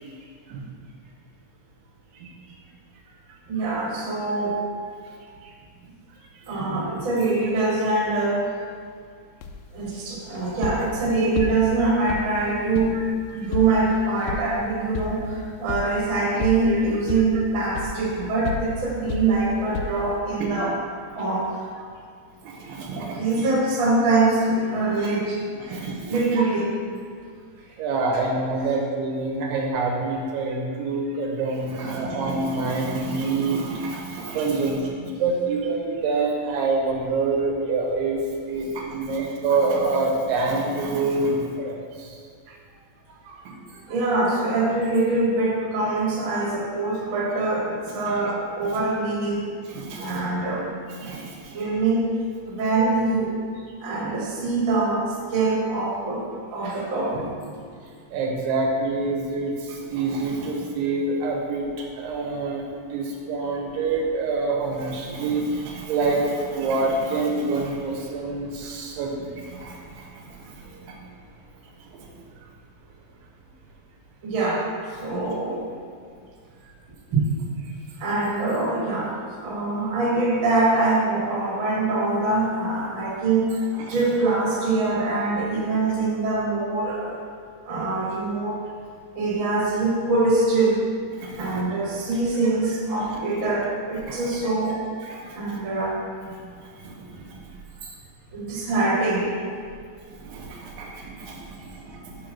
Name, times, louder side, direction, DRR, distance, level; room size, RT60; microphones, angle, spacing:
voice 1, 3.5-4.6 6.5-8.5 9.7-13.0 13.3-20.7 21.1-21.6 23.0-26.7 31.7-32.0 43.9-49.4 49.9-50.7 51.5-52.1 52.5-53.4 53.8-57.5 74.2-74.7 74.9-75.6 77.1-77.2 78.0-83.6 83.9-87.2 87.6-88.6 89.1-90.8 91.4-94.8 95.3-96.0 98.3-99.3, right 3 dB, 50° right, -5 dB, 1.6 m, -24 dB
sound 1, 9.4-20.2, left 4 dB, 85° left, 1.7 m, -34 dB
voice 2, 22.4-23.5 25.0-25.1 25.6-26.2 27.8-38.2 38.5-42.2 42.5-42.6 43.2-43.8 48.1-48.2 48.6-48.8 49.7-50.2 51.0-51.7 58.1-71.0 71.8-72.1 75.0-75.3 83.7-84.0 91.1-91.6 93.0-93.2 94.0-94.2 95.0-95.6 96.3-97.5 100.1-102.3, right 3 dB, 85° right, -1 dB, 2.6 m, -27 dB
5.6 x 5.1 x 5.8 m, 2.1 s
omnidirectional pair, 4.0 m